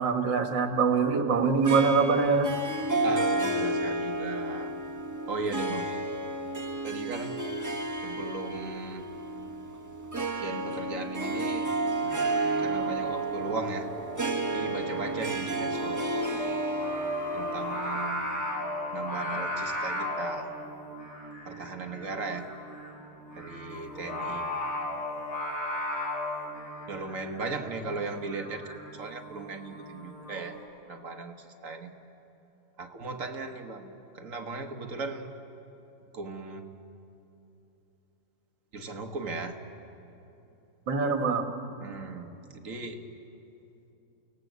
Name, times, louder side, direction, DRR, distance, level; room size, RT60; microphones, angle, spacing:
voice 1, 0.0-2.5 40.9-41.5, right 4 dB, 75° right, 6 dB, 2.2 m, -24 dB
Harp, 1.6-18.4, right 2 dB, 15° right, 0.8 m, -32 dB
voice 2, 3.0-4.7 5.3-5.9 6.8-7.5 8.0-9.1 10.4-11.7 12.6-13.9 14.5-16.2 17.3-18.2 18.9-20.6 21.4-22.4 23.3-24.5 26.9-30.6 30.9-31.9 32.8-35.3 36.1-36.7 38.7-39.6 41.8-43.0, right 3 dB, 45° right, 5 dB, 1.7 m, -37 dB
Singing, 11.9-30.4, left 1 dB, 65° left, 5.6 m, -36 dB
29.0 x 17.5 x 8.2 m, 2.9 s
omnidirectional pair, 2.0 m